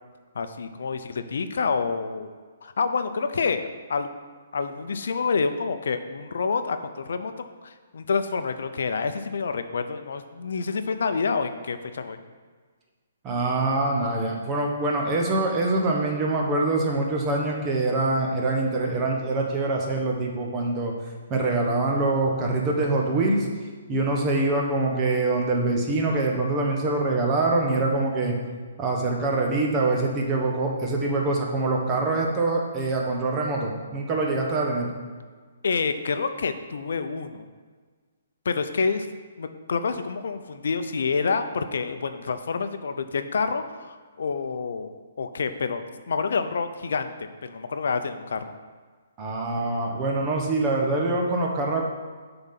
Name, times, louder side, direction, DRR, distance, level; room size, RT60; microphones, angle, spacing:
voice 1, 0.3-2.3 2.6-4.1 4.5-7.3 7.6-12.2 35.6-37.5 38.4-39.1 39.4-44.9 45.2-48.4, left 5 dB, 70° left, 9 dB, 0.6 m, -28 dB
voice 2, 13.2-20.9 21.3-23.5 23.9-28.4 28.8-34.9 49.2-51.8, right 2 dB, 25° right, 0 dB, 1.2 m, -24 dB
7.0 x 3.9 x 5.9 m, 1.5 s
hypercardioid pair, 145°, 0 cm